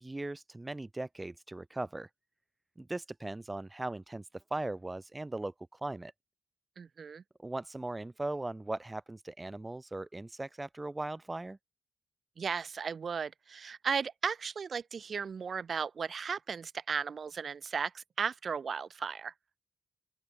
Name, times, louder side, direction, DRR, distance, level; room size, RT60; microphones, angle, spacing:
voice 1, 0.0-2.1 2.8-6.1 7.4-11.6, right 2 dB, 15° right, 0.6 m, -39 dB
voice 2, 6.8-7.2 12.4-19.3, right 6 dB, 45° right, 1.7 m, -35 dB
open air
wide cardioid pair, 150°, 0 cm